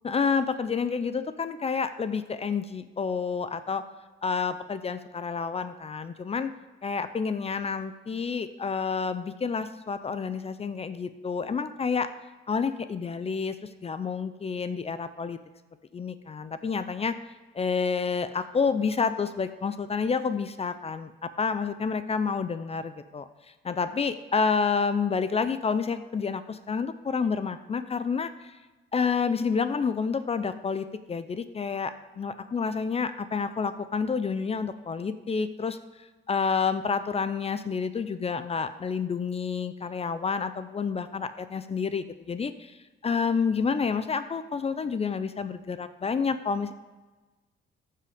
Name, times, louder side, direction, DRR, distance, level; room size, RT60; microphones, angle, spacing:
voice 1, 0.0-3.8 4.2-6.5 6.8-12.1 12.5-15.4 15.9-17.2 17.5-23.2 23.6-28.5 28.9-35.8 36.3-42.8 43.0-46.7, left 5 dB, 30° left, 12 dB, 0.5 m, -29 dB
14.0 x 5.6 x 5.0 m, 1.2 s
cardioid pair, 90°, 20 cm